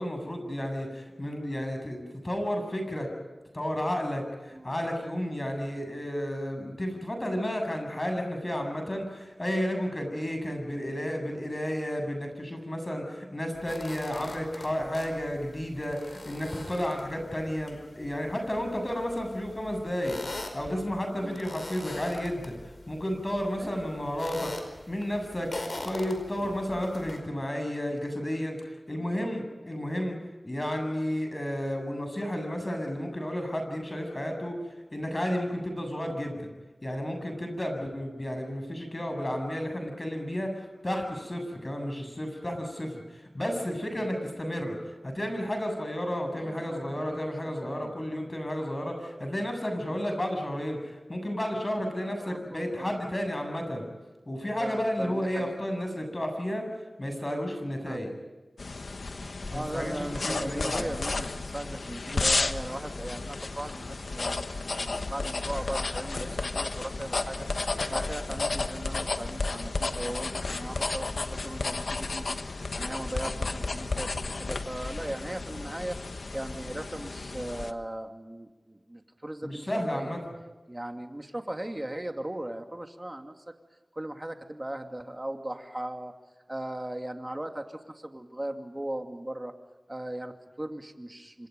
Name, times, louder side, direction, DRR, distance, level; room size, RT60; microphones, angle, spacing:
voice 1, 0.0-3.1 3.5-20.2 20.5-22.5 22.9-24.5 24.9-30.2 30.4-34.6 34.9-36.5 36.8-44.8 45.0-53.8 54.3-56.6 57.0-58.1 59.5-60.9 79.4-80.2, equal, 35° left, 5 dB, 7.6 m, -32 dB
sound 1, 13.5-27.2, left 2 dB, 65° left, 4.8 m, -43 dB
voice 2, 23.6-23.9 26.4-26.5 37.7-37.9 44.0-44.1 46.4-47.2 47.6-48.0 49.9-50.0 52.0-53.0 54.6-55.6 57.9-58.0 59.5-74.1 74.4-80.2 80.7-83.4 83.9-86.1 86.5-89.5 89.9-91.5, right 1 dB, 25° right, 5 dB, 2.5 m, -38 dB
sound 2, 58.6-77.7, left 3 dB, 85° left, 1.3 m, -32 dB
28.5 x 26.0 x 5.4 m, 1.2 s
wide cardioid pair, 70°, 0 cm